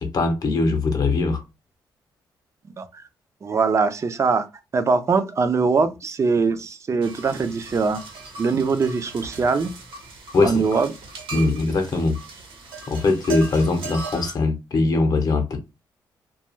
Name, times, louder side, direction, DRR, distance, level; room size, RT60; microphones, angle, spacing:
voice 1, 0.0-1.4 10.3-10.6 11.3-12.2 12.9-15.6, left 3 dB, 50° left, 0.7 m, -21 dB
voice 2, 3.4-4.5 4.7-8.0 8.4-9.7 10.4-10.9 11.3-11.5, right 4 dB, 35° right, 0.4 m, -22 dB
sound 1, 7.0-14.3, right 4 dB, 90° right, 0.9 m, -38 dB
2.3 x 2.2 x 2.9 m
cardioid pair, 100°, 8 cm